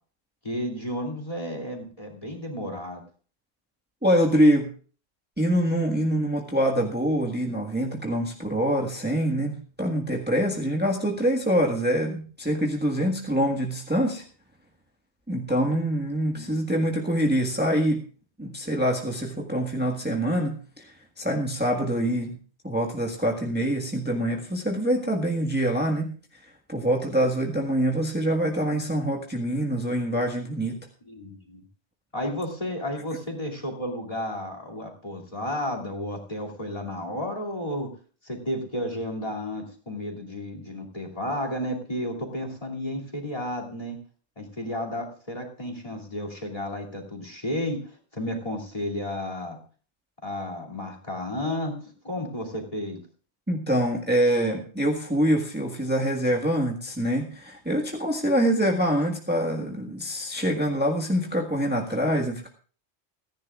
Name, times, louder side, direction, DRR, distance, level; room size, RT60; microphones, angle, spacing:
voice 1, 0.4-3.0 16.3-16.8 31.1-31.6 32.1-37.9 38.2-44.0 44.4-49.6 50.2-53.0, left 1 dB, 30° left, 3 dB, 2.8 m, -32 dB
voice 2, 4.0-4.7 5.4-14.2 15.3-18.0 18.4-22.3 22.6-26.1 26.7-30.8 53.5-62.5, equal, 10° right, -1 dB, 1.6 m, -25 dB
30.0 x 10.5 x 2.5 m, 0.40 s
omnidirectional pair, 1.1 m